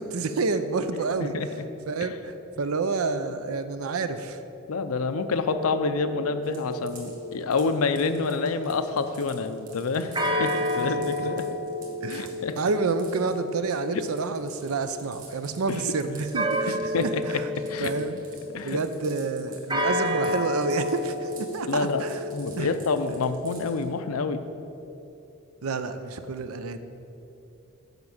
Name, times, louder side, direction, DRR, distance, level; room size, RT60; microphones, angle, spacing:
voice 1, 0.0-1.3 1.9-4.4 10.8-10.9 11.2-11.3 12.0-17.5 17.8-18.3 18.6-22.2 22.6-22.7 25.6-26.8, right 4 dB, 85° right, 10 dB, 0.6 m, -29 dB
voice 2, 4.7-10.1 10.4-11.5 12.1-12.6 13.9-14.1 15.7-15.8 16.9-17.2 17.7-17.9 18.5-18.8 21.7-22.0 22.3-24.4, left 4 dB, 85° left, 10 dB, 0.6 m, -27 dB
sound 1, 5.5-8.9 10.1-15.0 16.3-18.8 19.7-23.3, left 1 dB, 20° right, 0.7 m, -32 dB
sound 2, 6.4-19.8 20.1-23.8, right 5 dB, 40° right, 2.1 m, -50 dB
8.0 x 5.2 x 7.2 m, 2.9 s
head